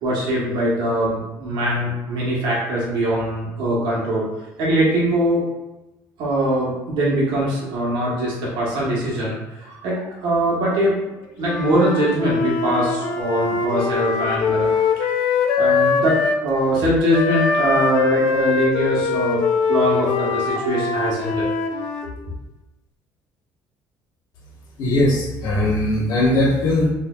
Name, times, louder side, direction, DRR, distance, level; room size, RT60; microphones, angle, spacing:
voice 1, 0.0-4.3 4.6-5.4 6.2-11.0 11.4-14.8 15.6-19.4 19.7-21.5, right 1 dB, 70° right, -6 dB, 1.2 m, -22 dB
Wind instrument woodwind instrument, 11.4-16.4 17.1-22.1, left 5 dB, 85° left, 0.5 m, -22 dB
voice 2, 24.8-26.9, left 1 dB, 55° left, -7 dB, 1.2 m, -19 dB
4.6 x 2.7 x 2.3 m, 1.0 s
cardioid pair, 140°, 8 cm